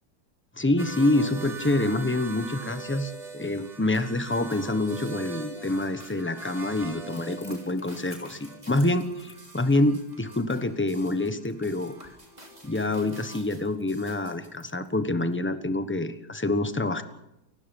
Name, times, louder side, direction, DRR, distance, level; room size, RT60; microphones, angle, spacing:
voice 1, 0.6-12.1 12.6-17.0, left 2 dB, 10° left, 10 dB, 1.0 m, -26 dB
sound 1, 0.8-13.4, right 4 dB, 40° right, 4.1 m, -43 dB
sound 2, 3.9-14.5, right 1 dB, 20° right, 3.8 m, -53 dB
Crackle, 7.1-15.3, left 1 dB, 40° left, 6.1 m, -55 dB
30.0 x 16.0 x 5.4 m, 0.87 s
omnidirectional pair, 1.8 m